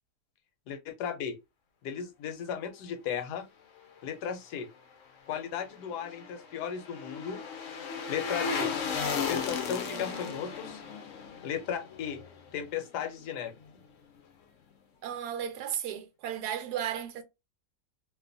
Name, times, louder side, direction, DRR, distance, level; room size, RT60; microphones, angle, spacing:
voice 1, 0.7-1.4 1.8-3.5 4.0-4.7 5.3-7.4 8.1-8.7 9.1-10.8 11.4-12.2 12.5-13.5, left 8 dB, 85° left, 1.2 m, -35 dB
sound 1, 5.7-12.9 13.2-13.3, left 5 dB, 65° left, 0.9 m, -35 dB
voice 2, 15.0-17.2, right 9 dB, 80° right, 1.1 m, -34 dB
2.7 x 2.3 x 2.5 m
omnidirectional pair, 1.7 m